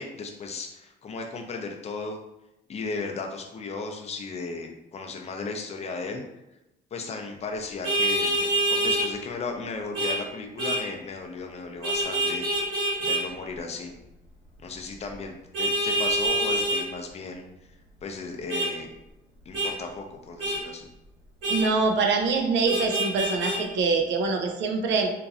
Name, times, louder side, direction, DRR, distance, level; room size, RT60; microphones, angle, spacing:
voice 1, 0.0-2.2 2.7-6.3 6.9-13.9 14.6-17.4 18.0-18.9 19.5-20.9, left 4 dB, 35° left, 3 dB, 0.5 m, -35 dB
Vehicle horn car horn honking, 7.8-9.1 9.9-10.2 10.6-10.8 11.8-13.2 15.5-16.8 18.5-18.7 19.5-19.7 20.4-20.6 21.4-21.7 22.7-23.6, right 1 dB, 90° right, 1.4 m, -26 dB
voice 2, 21.5-25.1, right 4 dB, 75° right, 3 dB, 0.5 m, -24 dB
3.0 x 2.5 x 2.4 m, 0.92 s
cardioid pair, 105°, 19 cm